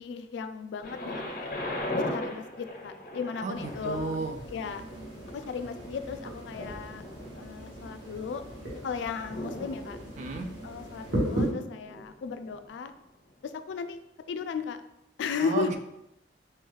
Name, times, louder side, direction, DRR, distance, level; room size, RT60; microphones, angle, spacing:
voice 1, 0.0-1.5 2.0-4.2 4.5-4.8 5.3-7.0 7.3-8.4 8.8-10.0 10.6-12.9 13.4-14.0 14.3-14.8 15.2-15.8, left 5 dB, 90° left, 9 dB, 0.3 m, -35 dB
Thunder, 0.8-12.7 13.4-13.5, left 1 dB, 55° left, 0.6 m, -40 dB
voice 2, 3.4-4.4 10.2-10.5 15.4-15.8, right 4 dB, 45° right, 5 dB, 0.4 m, -33 dB
sound 1, 3.5-11.5, right 1 dB, 85° right, 1.4 m, -37 dB
4.4 x 2.4 x 3.1 m, 0.85 s
head